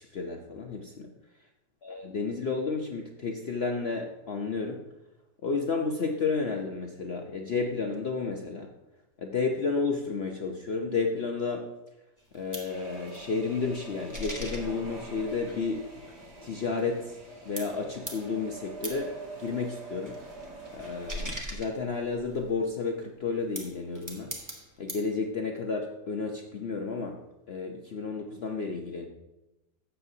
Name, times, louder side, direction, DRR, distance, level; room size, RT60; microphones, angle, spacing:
voice 1, 0.0-1.1 1.8-4.8 5.4-8.7 9.2-11.7 12.3-15.8 16.4-17.2 17.4-19.1 19.4-20.2 20.7-24.3 24.8-27.2 27.5-29.1, left 4 dB, 55° left, 2 dB, 0.7 m, -31 dB
sound 1, 12.2-17.3 17.6-22.6 23.3-25.1, equal, 15° right, 0.9 m, -42 dB
sound 2, 12.7-21.3, right 2 dB, 75° right, 2.8 m, -45 dB
12.5 x 7.8 x 2.7 m, 1.0 s
omnidirectional pair, 1.8 m